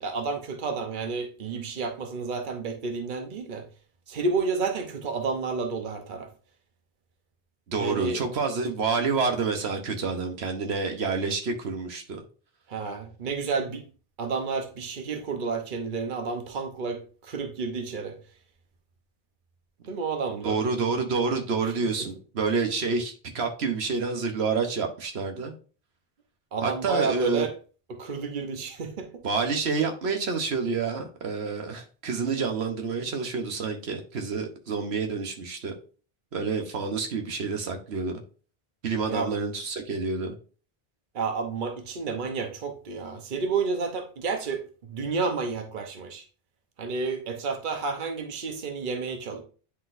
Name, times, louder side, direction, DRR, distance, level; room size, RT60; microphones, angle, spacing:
voice 1, 0.0-3.6 4.1-6.3 7.8-8.2 12.7-13.8 14.2-18.1 19.9-20.6 21.6-21.7 22.0-22.1 26.5-27.5 27.9-29.2 39.1-39.3 41.1-46.2 46.8-49.4, right 4 dB, 55° right, 1.0 m, -30 dB
voice 2, 7.7-12.2 20.4-25.5 26.6-27.5 29.2-35.7 36.3-38.2 38.8-40.3, right 4 dB, 85° right, 1.2 m, -28 dB
9.9 x 4.0 x 2.6 m
omnidirectional pair, 1.0 m